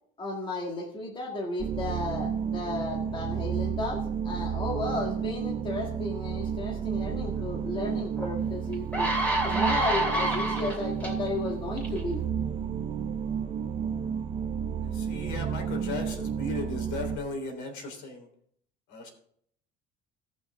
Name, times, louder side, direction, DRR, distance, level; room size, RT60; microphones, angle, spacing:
voice 1, 0.2-9.1 9.4-12.2, left 2 dB, 25° left, 1 dB, 1.7 m, -34 dB
sound 1, 1.6-17.2, right 7 dB, 30° right, 0.6 m, -32 dB
sound 2, 8.2-8.3 8.7-11.1 11.8-12.0, right 2 dB, 10° left, 2.8 m, -27 dB
voice 2, 14.8-18.3 18.9-19.1, left 3 dB, 75° left, 3 dB, 3.6 m, -36 dB
18.0 x 6.1 x 3.5 m, 0.66 s
cardioid pair, 135°, 19 cm